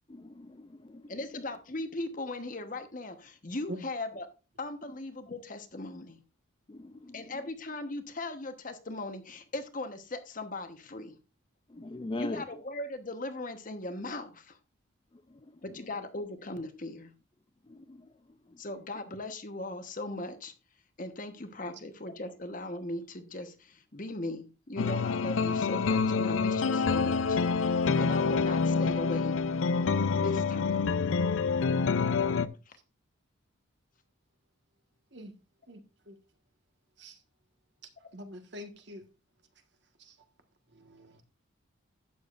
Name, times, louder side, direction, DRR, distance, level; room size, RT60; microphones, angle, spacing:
voice 1, 0.1-0.6 0.9-1.0 6.7-7.1 11.7-12.4 17.7-18.0, left 2 dB, 25° left, 0.4 m, -39 dB
voice 2, 1.1-4.3 4.6-6.2 7.1-11.1 12.2-14.6 15.6-17.1 18.6-20.5 21.0-27.4 28.0-29.4 30.2-30.8 32.7-32.8, left 2 dB, 40° left, 1.1 m, -38 dB
sound 1, 24.8-32.5, left 5 dB, 75° left, 0.5 m, -27 dB
voice 3, 38.1-39.0 40.0-40.1 40.7-41.2, equal, 55° right, 1.5 m, -44 dB
12.0 x 8.9 x 2.5 m
head